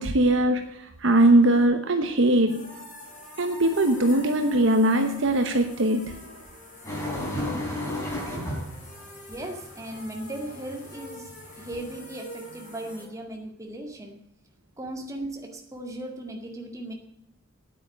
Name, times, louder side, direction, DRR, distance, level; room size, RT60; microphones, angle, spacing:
voice 1, 0.0-2.8 3.4-6.2, right 1 dB, 65° right, 6 dB, 1.0 m, -21 dB
sound 1, 2.5-13.0, left 1 dB, 35° left, 5.6 m, -45 dB
sound 2, 6.8-11.9, left 1 dB, 15° left, 3.8 m, -33 dB
voice 2, 9.3-14.2 14.8-16.9, right 1 dB, 15° right, 2 dB, 2.0 m, -37 dB
9.5 x 8.8 x 8.9 m, 0.80 s
head